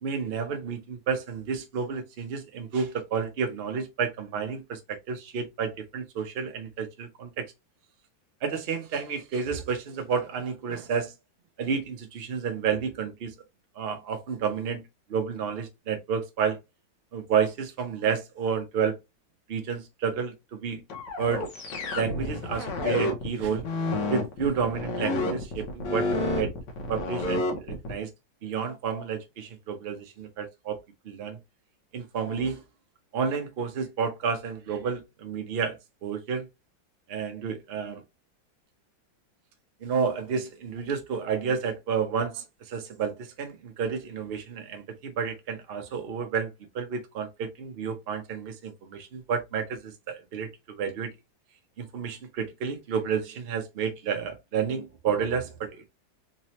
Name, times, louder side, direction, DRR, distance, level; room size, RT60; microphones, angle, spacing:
voice 1, 0.0-7.5 8.4-11.1 11.6-13.3 13.8-14.8 15.1-16.6 17.1-19.0 19.5-20.8 21.2-21.5 21.9-23.7 24.1-26.1 26.4-26.5 26.9-28.1 28.4-30.8 31.0-31.4 31.9-32.6 33.1-35.8 36.0-36.5 37.1-38.0 39.8-51.1 51.8-55.9, right 6 dB, 70° right, 0.5 m, -30 dB
sound 1, 20.9-27.9, left 2 dB, 75° left, 1.6 m, -29 dB
3.9 x 2.8 x 3.0 m
omnidirectional pair, 2.0 m